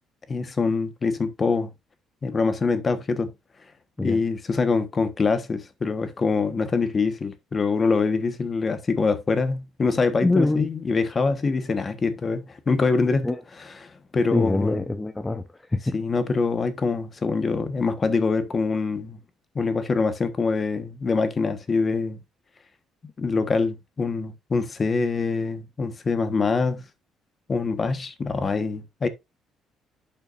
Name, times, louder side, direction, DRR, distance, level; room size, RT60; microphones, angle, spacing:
voice 1, 0.3-1.7 2.2-3.3 4.0-13.3 13.8-14.8 15.9-19.2 19.5-22.2 23.2-26.8 27.5-29.1, left 4 dB, 30° left, 1.1 m, -24 dB
voice 2, 10.2-10.7 13.2-13.4 14.3-15.9, left 2 dB, 10° left, 0.6 m, -24 dB
11.0 x 5.7 x 2.5 m
cardioid pair, 120°, 0 cm